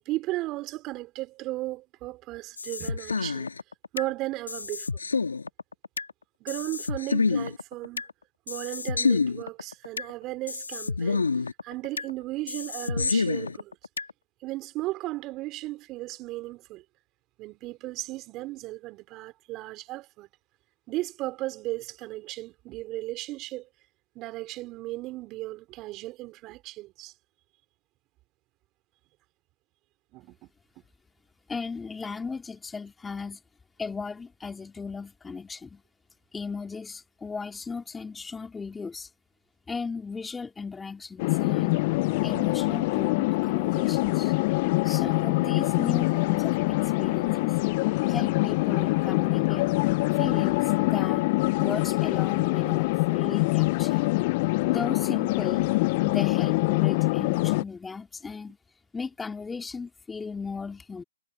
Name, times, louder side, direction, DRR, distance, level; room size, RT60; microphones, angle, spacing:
voice 1, 0.0-3.5 3.9-4.9 6.4-8.1 8.5-11.3 11.6-13.8 14.4-16.8 17.4-20.3 20.9-23.7 24.1-27.1 30.1-30.5, right 18 dB, 25° right, 4.6 m, -35 dB
sound 1, 2.6-4.1 4.5-6.1 6.5-8.1 8.5-10.1 10.5-12.1 12.5-14.1, left 4 dB, 85° left, 2.7 m, -28 dB
voice 2, 31.5-33.4 33.8-35.8 36.3-39.1 39.7-41.9 42.2-44.4 44.8-47.6 48.1-49.7 50.1-51.3 51.6-54.0 54.6-55.7 56.0-58.6 58.9-61.0, left 4 dB, 10° left, 2.5 m, -36 dB
sound 2, 41.2-57.6, left 23 dB, 35° left, 0.5 m, -24 dB
hypercardioid pair, 135°, 0 cm